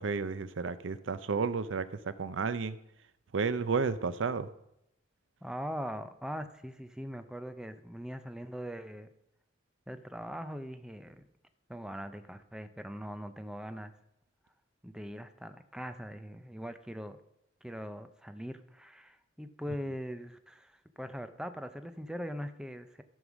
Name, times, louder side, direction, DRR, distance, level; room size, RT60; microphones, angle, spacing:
voice 1, 0.0-2.8 3.3-4.5, right 5 dB, 85° right, 14 dB, 0.6 m, -32 dB
voice 2, 5.4-9.1 9.9-11.2 11.7-13.9 14.8-17.2 17.6-23.0, equal, 5° right, 9 dB, 0.5 m, -41 dB
13.0 x 5.5 x 6.1 m, 0.81 s
head